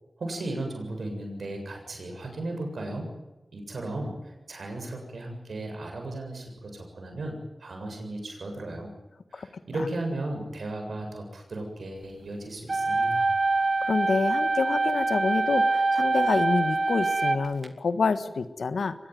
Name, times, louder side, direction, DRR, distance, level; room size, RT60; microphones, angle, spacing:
voice 1, 0.2-3.1 3.5-8.9 9.3-13.4, right 2 dB, 80° right, 3 dB, 7.4 m, -35 dB
sound 1, 12.7-17.7, right 3 dB, 55° right, 2.4 m, -25 dB
voice 2, 13.8-18.9, left 4 dB, 85° left, 11 dB, 1.5 m, -27 dB
24.0 x 20.0 x 9.5 m, 1.1 s
cardioid pair, 40°, 0 cm